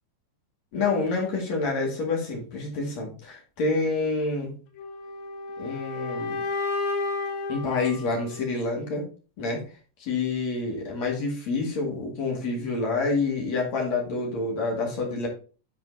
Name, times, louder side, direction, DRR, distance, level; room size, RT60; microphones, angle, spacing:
voice 1, 0.7-4.5 5.6-6.4 7.5-9.1 9.4-9.6 10.0-15.3, left 3 dB, 45° left, -1 dB, 2.9 m, -28 dB
sound 1, 4.8-8.8, left 3 dB, 75° left, 3.2 m, -32 dB
11.0 x 4.3 x 3.9 m, 0.37 s
omnidirectional pair, 5.0 m